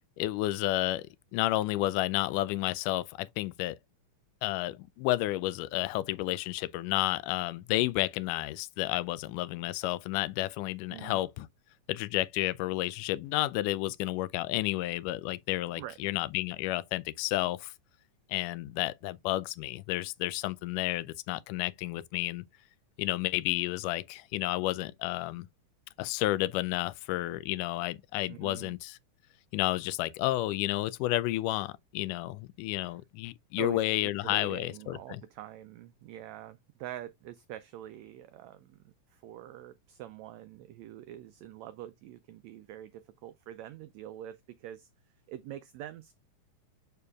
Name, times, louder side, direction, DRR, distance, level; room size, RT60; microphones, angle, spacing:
voice 1, 0.2-3.8 4.4-11.5 11.9-17.7 18.3-22.4 23.0-25.5 26.0-29.0 29.5-35.2, left 17 dB, 80° left, 2.0 m, -31 dB
voice 2, 10.9-11.2 15.8-16.0 28.3-28.7 33.6-33.8 34.2-44.9 45.3-46.1, right 12 dB, 90° right, 1.5 m, -45 dB
6.9 x 6.7 x 2.3 m
omnidirectional pair, 3.8 m